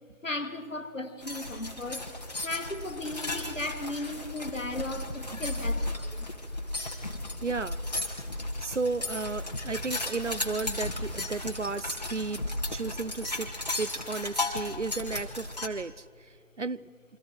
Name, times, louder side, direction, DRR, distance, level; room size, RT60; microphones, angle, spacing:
voice 1, 0.2-2.1 2.4-6.3, left 2 dB, 60° left, 1.9 m, -36 dB
sound 1, 1.2-15.7, left 2 dB, 30° left, 1.8 m, -35 dB
voice 2, 7.4-7.8 8.6-12.4 12.7-13.5 13.8-16.0 16.6-16.8, right 4 dB, 60° right, 0.5 m, -33 dB
29.0 x 24.5 x 4.7 m
figure-of-eight pair, 170°, 43 cm